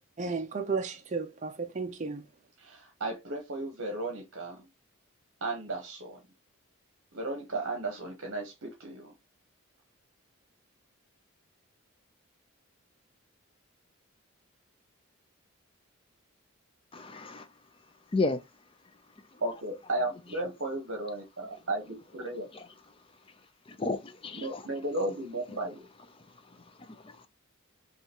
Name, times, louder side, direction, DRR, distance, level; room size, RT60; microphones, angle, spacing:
voice 1, 0.2-2.2, right 4 dB, 35° right, 0.5 m, -33 dB
voice 2, 2.6-4.7 5.4-6.2 7.1-9.1 19.4-22.5 24.4-25.9, right 2 dB, 60° right, 0.9 m, -35 dB
voice 3, 16.9-17.5 18.1-18.4 22.5-22.6 23.7-24.6 26.9-27.3, left 3 dB, 25° left, 0.4 m, -32 dB
5.6 x 2.3 x 2.9 m
head